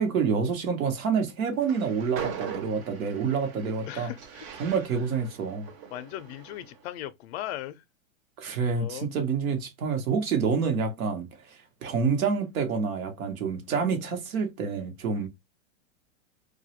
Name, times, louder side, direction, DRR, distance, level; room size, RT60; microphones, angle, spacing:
voice 1, 0.0-4.1 4.6-5.7 8.4-15.3, right 5 dB, 90° right, 0.9 m, -28 dB
Train, 1.5-6.8, right 7 dB, 30° right, 0.5 m, -41 dB
voice 2, 3.9-4.5 5.9-7.8 8.8-9.1 15.1-15.3, left 13 dB, 55° left, 0.5 m, -38 dB
2.3 x 2.0 x 2.8 m
hypercardioid pair, 135°, 41 cm